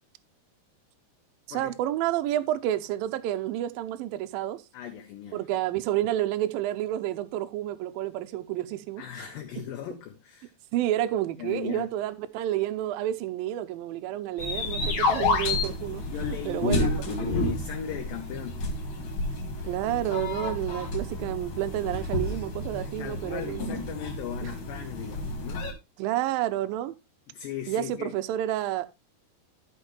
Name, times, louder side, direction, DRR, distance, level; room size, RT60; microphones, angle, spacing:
voice 1, 1.5-4.6 5.3-9.3 10.7-16.0 16.3-17.3 19.6-23.8 24.4-24.5 26.0-27.0 27.7-28.9, right 13 dB, 85° right, 2.1 m, -30 dB
voice 2, 4.7-5.4 9.0-10.5 11.4-11.9 15.9-18.7 22.8-25.7 27.3-28.1, left 9 dB, 70° left, 2.3 m, -38 dB
sound 1, 14.4-25.7, left 2 dB, 50° left, 2.8 m, -30 dB
13.5 x 5.6 x 3.2 m
omnidirectional pair, 4.8 m